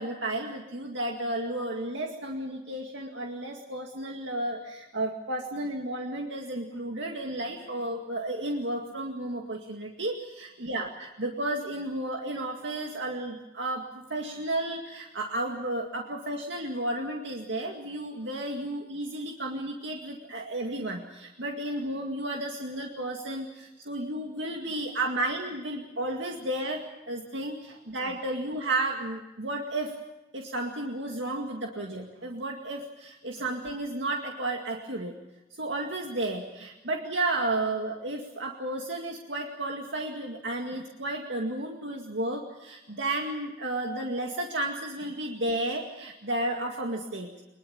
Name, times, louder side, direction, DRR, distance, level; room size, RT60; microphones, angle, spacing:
voice 1, 0.0-30.0 30.3-35.1 35.6-47.3, right 1 dB, 75° right, 1 dB, 2.2 m, -33 dB
23.0 x 21.5 x 7.1 m, 1.0 s
head